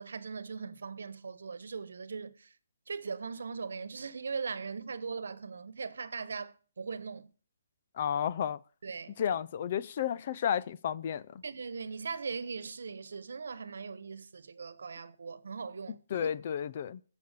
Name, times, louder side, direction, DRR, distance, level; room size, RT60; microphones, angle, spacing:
voice 1, 0.0-2.5 2.9-7.3 8.8-9.4 11.4-16.3, right 5 dB, 70° right, 1.2 m, -40 dB
voice 2, 7.9-8.6 9.2-11.4 15.9-17.0, left 9 dB, 40° left, 0.5 m, -32 dB
16.0 x 7.1 x 6.6 m
hypercardioid pair, 165°, 0 cm